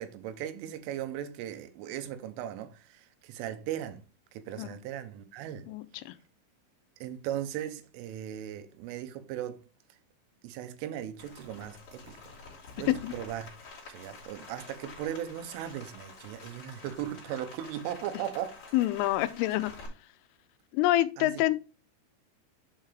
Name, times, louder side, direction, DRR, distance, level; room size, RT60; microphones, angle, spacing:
voice 1, 0.0-4.0 4.3-5.7 7.0-9.6 9.9-10.0 10.4-12.2 12.8-13.5 13.9-18.6 21.2-21.4, right 11 dB, 85° right, 3.4 m, -38 dB
voice 2, 5.7-6.1 13.0-13.1 18.7-19.7 20.7-21.6, left 15 dB, 85° left, 3.2 m, -27 dB
Rain, 11.2-19.9, left 4 dB, 35° left, 3.3 m, -49 dB
7.8 x 5.7 x 3.4 m
omnidirectional pair, 5.6 m